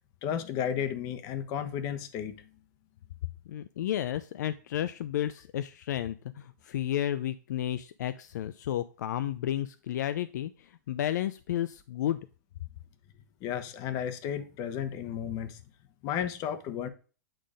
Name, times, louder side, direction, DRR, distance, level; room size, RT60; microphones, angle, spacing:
voice 1, 0.2-2.5 13.4-15.6 16.0-16.9, left 9 dB, 35° left, 1.1 m, -33 dB
voice 2, 3.5-12.2, left 11 dB, 65° left, 0.5 m, -32 dB
9.0 x 3.7 x 5.1 m
hypercardioid pair, 130°, 10 cm